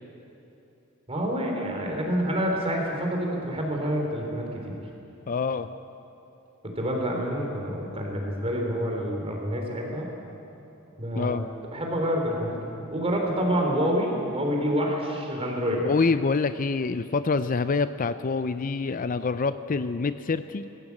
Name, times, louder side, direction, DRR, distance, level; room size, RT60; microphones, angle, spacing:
voice 1, 1.1-4.8 6.6-10.1 11.0-11.4 11.7-12.6 12.9-15.8, equal, 30° right, 0 dB, 3.9 m, -27 dB
voice 2, 5.3-5.7 11.2-11.4 15.8-20.7, left 4 dB, 40° left, 12 dB, 0.5 m, -26 dB
21.0 x 15.5 x 8.5 m, 2.9 s
head